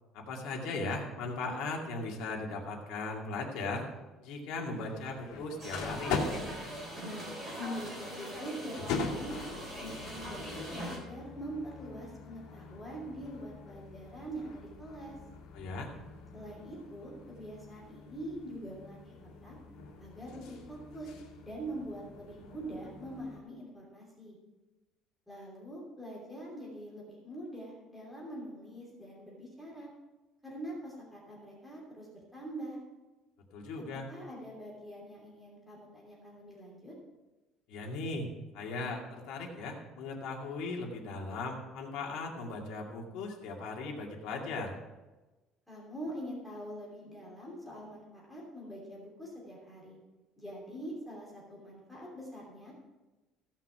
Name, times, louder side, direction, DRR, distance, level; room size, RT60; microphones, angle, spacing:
voice 1, 0.1-3.9 4.2-6.2 15.5-15.9 33.5-34.1 37.7-44.7, left 3 dB, 65° left, 0 dB, 2.3 m, -38 dB
sound 1, 4.7-23.4, left 4 dB, 80° left, 2.4 m, -43 dB
sound 2, 5.6-11.0, right 1 dB, 15° right, 3.9 m, -41 dB
voice 2, 7.0-9.3 9.8-15.1 16.3-19.5 20.0-21.1 21.4-24.4 25.3-29.9 30.4-32.8 33.9-36.9 45.7-50.0 50.4-52.7, right 1 dB, 5° left, -5 dB, 2.9 m, -44 dB
16.0 x 5.8 x 5.9 m, 1.1 s
cardioid pair, 180°, 0 cm